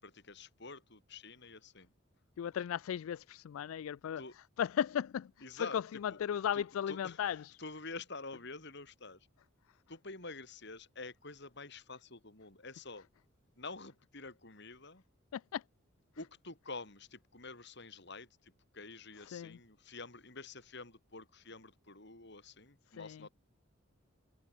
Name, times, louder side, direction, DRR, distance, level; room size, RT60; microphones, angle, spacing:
voice 1, 0.0-1.9 4.2-4.4 5.4-5.8 6.1-6.2 6.5-7.2 7.6-9.2 9.9-13.1 13.6-15.0 16.2-23.3, left 3 dB, 55° left, 5.4 m, -48 dB
voice 2, 2.4-7.5 15.3-15.6 19.3-19.6 23.0-23.3, left 9 dB, 80° left, 0.3 m, -36 dB
head